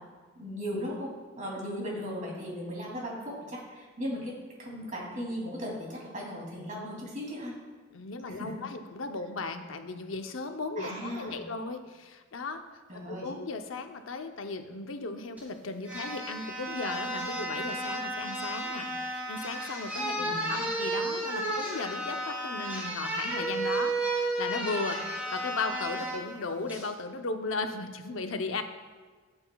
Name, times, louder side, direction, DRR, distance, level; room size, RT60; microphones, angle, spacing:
voice 1, 0.4-4.3 4.6-7.5 8.3-8.5 10.8-11.5 12.9-13.3 20.2-20.6, equal, 40° right, -3 dB, 2.8 m, -37 dB
voice 2, 7.9-28.6, left 3 dB, 80° left, 6 dB, 0.7 m, -36 dB
sound 1, 15.4-15.5 15.8-26.2 26.7-26.9, right 1 dB, 10° right, 2.5 m, -33 dB
14.0 x 7.8 x 2.3 m, 1.4 s
head